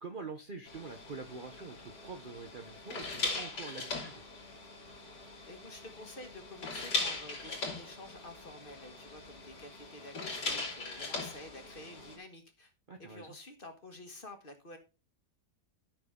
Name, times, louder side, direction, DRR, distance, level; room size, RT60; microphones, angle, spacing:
voice 1, 0.0-4.2 12.9-13.3, right 4 dB, 40° right, 0.8 m, -45 dB
sound 1, 0.7-12.2, left 3 dB, 85° left, 3.2 m, -40 dB
voice 2, 5.5-12.7 13.0-14.8, left 2 dB, 35° left, 1.5 m, -50 dB
13.5 x 6.0 x 3.7 m
omnidirectional pair, 1.8 m